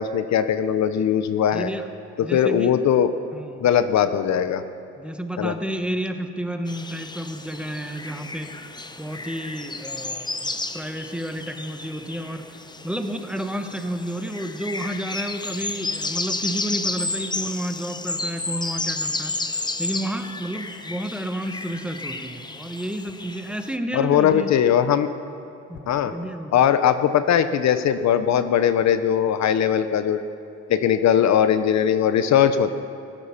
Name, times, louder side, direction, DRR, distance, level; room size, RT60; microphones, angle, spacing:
voice 1, 0.0-1.7 2.2-3.1 3.6-4.6 5.4-5.5 23.9-25.1 25.9-26.1 26.5-30.2 30.7-32.7, left 9 dB, 65° left, 11 dB, 0.7 m, -20 dB
voice 2, 1.5-1.9 2.2-2.7 3.3-3.7 5.0-24.6 25.7-26.6, right 1 dB, 5° right, 6 dB, 1.1 m, -31 dB
sound 1, 6.7-23.8, left 2 dB, 15° left, 0.8 m, -32 dB
15.5 x 12.5 x 5.7 m, 2.8 s
cardioid pair, 90°, 30 cm